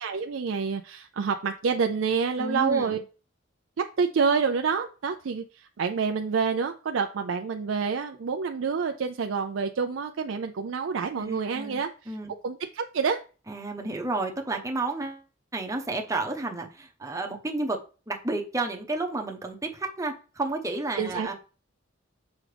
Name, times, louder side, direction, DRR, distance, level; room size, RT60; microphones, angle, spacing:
voice 1, 0.0-3.0 4.0-12.2 12.4-13.2 21.0-21.3, right 5 dB, 75° right, 0.4 m, -28 dB
voice 2, 2.4-3.0 11.2-11.8 12.1-12.3 13.5-15.2 15.5-17.8 18.1-21.3, right 2 dB, 15° right, 0.9 m, -31 dB
6.3 x 4.8 x 3.3 m
head